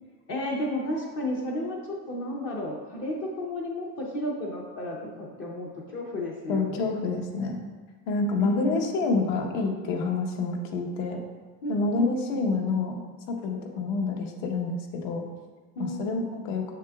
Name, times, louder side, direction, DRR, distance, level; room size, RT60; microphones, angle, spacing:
voice 1, 0.3-6.9 8.4-8.9 11.6-12.4 15.8-16.3, left 1 dB, 25° left, -2 dB, 0.7 m, -33 dB
voice 2, 6.5-7.6 8.1-11.2 11.7-13.0 13.3-15.2 15.8-16.7, left 3 dB, 55° left, 2 dB, 1.1 m, -27 dB
6.9 x 6.5 x 2.3 m, 1.4 s
supercardioid pair, 155°, 47 cm